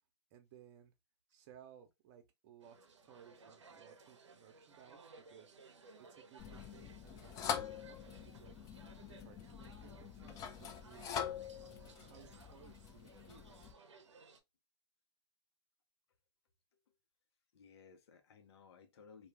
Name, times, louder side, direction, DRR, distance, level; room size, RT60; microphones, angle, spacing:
voice 1, 0.3-0.9 1.3-7.6 7.9-11.3 11.5-13.7, right 9 dB, 45° right, 0.8 m, -61 dB
sound 1, 2.6-14.4, right 4 dB, 80° right, 0.6 m, -60 dB
sound 2, 6.4-13.7, left 8 dB, 25° left, 0.4 m, -44 dB
voice 2, 17.5-19.3, left 5 dB, 65° left, 0.8 m, -60 dB
2.3 x 2.3 x 3.3 m
hypercardioid pair, 115°, 15 cm